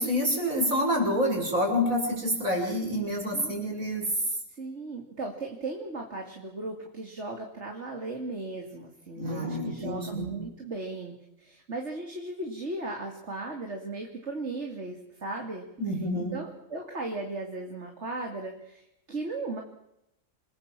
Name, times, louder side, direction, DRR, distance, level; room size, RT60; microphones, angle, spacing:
voice 1, 0.0-4.1 9.2-10.3 15.8-16.4, equal, 85° right, 0 dB, 6.9 m, -28 dB
voice 2, 4.5-15.7 16.1-19.6, right 2 dB, 55° right, 2 dB, 2.9 m, -37 dB
27.5 x 19.5 x 7.5 m, 0.84 s
omnidirectional pair, 1.4 m